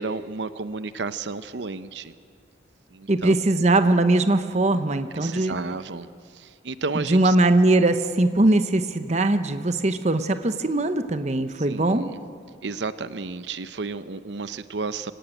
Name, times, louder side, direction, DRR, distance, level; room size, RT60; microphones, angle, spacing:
voice 1, 0.0-2.1 2.9-3.3 5.2-7.4 11.6-12.2 12.6-15.1, right 4 dB, 70° right, 13 dB, 0.7 m, -32 dB
voice 2, 3.1-5.5 6.9-12.1, right 2 dB, 35° right, 9 dB, 0.8 m, -21 dB
24.5 x 17.0 x 9.1 m, 2.2 s
head